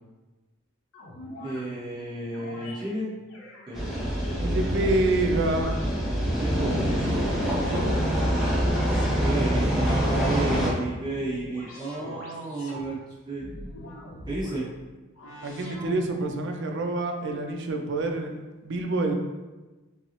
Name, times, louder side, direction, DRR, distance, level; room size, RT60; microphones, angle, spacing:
sound 1, 0.9-1.6 2.3-2.8 3.3-5.1 5.5-6.4 6.9-8.1 8.7-9.3 9.9-10.5 11.0-12.9 13.4-14.6 15.1-16.4, left 1 dB, 75° left, 0.7 m, -42 dB
voice 1, 1.4-3.1 3.7-3.8 6.4-7.3 7.6-7.9 9.1-13.0 13.2-13.4 14.3-14.7, right 2 dB, 20° right, -10 dB, 1.0 m, -32 dB
sound 2, 3.7-10.7, equal, ahead, 0.7 m, -25 dB
voice 2, 4.4-5.8 15.4-18.3 18.6-19.1, right 2 dB, 55° right, 3 dB, 0.4 m, -27 dB
5.4 x 2.0 x 2.9 m, 1.2 s
head